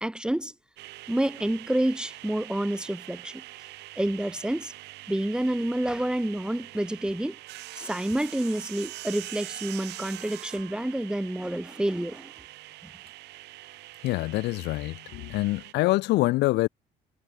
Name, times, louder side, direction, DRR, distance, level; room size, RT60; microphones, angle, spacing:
voice 1, 0.0-0.5 1.1-3.4 4.0-4.7 5.1-7.4 7.8-12.3, right 1 dB, 5° right, 1.0 m, -28 dB
sound 1, 0.8-15.7, right 18 dB, 85° right, 6.5 m, -44 dB
voice 2, 14.0-16.7, left 19 dB, 85° left, 1.1 m, -25 dB
cardioid pair, 110°, 17 cm